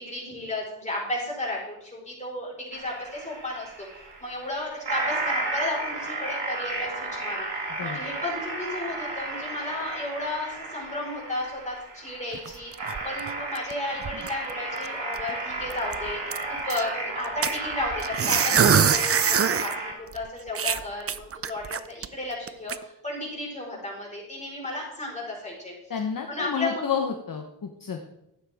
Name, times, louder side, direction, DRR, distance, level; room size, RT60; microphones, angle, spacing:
voice 1, 0.0-3.7 4.2-7.5 7.8-16.2 16.5-25.7 26.3-26.8, left 2 dB, 15° left, -3 dB, 4.6 m, -33 dB
sound 1, 2.7-19.9, right 2 dB, 70° right, 2.6 m, -33 dB
sound 2, 12.3-13.7 14.0-14.5 14.8-14.9 15.2-15.3 15.7-16.8 17.4-19.7 20.1-20.2 20.5-22.1 22.5-22.8, right 7 dB, 35° right, 0.5 m, -24 dB
voice 2, 25.9-28.1, left 6 dB, 50° left, 3 dB, 1.0 m, -30 dB
12.0 x 8.9 x 3.6 m, 0.83 s
cardioid pair, 80°, 42 cm